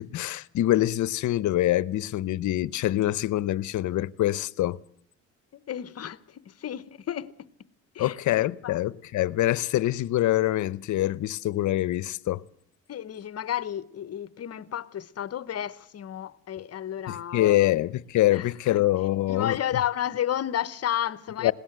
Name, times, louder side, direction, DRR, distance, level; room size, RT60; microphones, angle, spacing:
voice 1, 0.0-4.8 8.0-12.4 17.1-19.6 21.4-21.5, left 14 dB, 75° left, 0.8 m, -25 dB
voice 2, 5.7-7.5 7.9-8.2 8.6-8.8 12.9-17.7 18.3-18.9 19.3-21.5, left 11 dB, 55° left, 0.9 m, -32 dB
20.5 x 18.0 x 8.0 m
cardioid pair, 90°, 30 cm